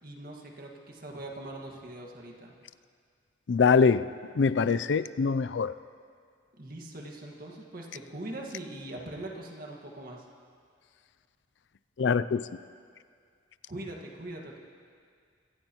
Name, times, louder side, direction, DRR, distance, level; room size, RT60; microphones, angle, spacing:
voice 1, 0.0-2.5 6.6-10.3 13.7-14.6, right 1 dB, 50° right, 0 dB, 1.8 m, -41 dB
voice 2, 3.5-5.8 12.0-12.4, left 5 dB, 70° left, 15 dB, 0.4 m, -24 dB
25.0 x 15.5 x 3.0 m, 2.1 s
head